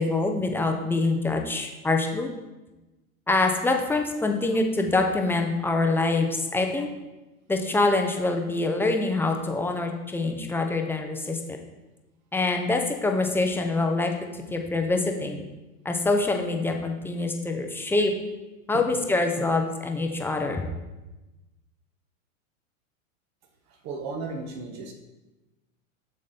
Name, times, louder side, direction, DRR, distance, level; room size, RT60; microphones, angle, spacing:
voice 1, 0.0-2.3 3.3-6.9 7.5-11.6 12.3-14.2 14.5-15.4 15.8-18.1 18.7-20.6, left 3 dB, 5° left, 3 dB, 0.8 m, -25 dB
voice 2, 23.7-24.9, right 3 dB, 40° right, 3 dB, 1.4 m, -35 dB
7.2 x 6.4 x 4.2 m, 1.1 s
hypercardioid pair, 105°, 41 cm